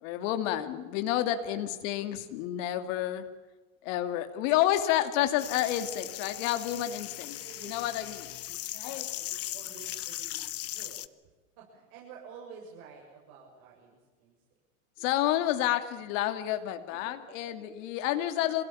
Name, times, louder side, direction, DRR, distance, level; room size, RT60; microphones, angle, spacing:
voice 1, 0.0-3.3 3.8-8.3 8.7-9.1 15.0-18.6, left 12 dB, 65° left, 9 dB, 2.4 m, -30 dB
sound 1, 5.4-11.1, left 15 dB, 35° left, 0.9 m, -38 dB
voice 2, 7.4-8.2 8.8-11.0 11.6-14.3 16.9-17.7, right 6 dB, 60° right, -1 dB, 6.8 m, -51 dB
27.0 x 17.0 x 8.5 m, 1.3 s
supercardioid pair, 115°, 42 cm